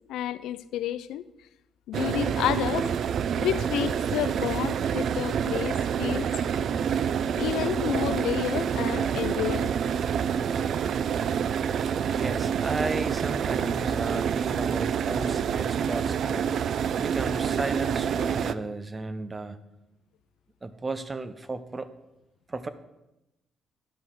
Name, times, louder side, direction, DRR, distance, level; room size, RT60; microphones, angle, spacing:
voice 1, 0.1-1.2 1.9-2.9 3.3-6.3 7.3-9.7 16.3-16.4, left 12 dB, 90° left, 0.4 m, -30 dB
sound 1, 1.9-18.5, right 8 dB, 65° right, 0.3 m, -27 dB
voice 2, 12.1-19.6 20.6-21.9 22.5-22.7, right 2 dB, 25° right, 0.7 m, -34 dB
10.5 x 5.5 x 6.2 m
cardioid pair, 100°, 0 cm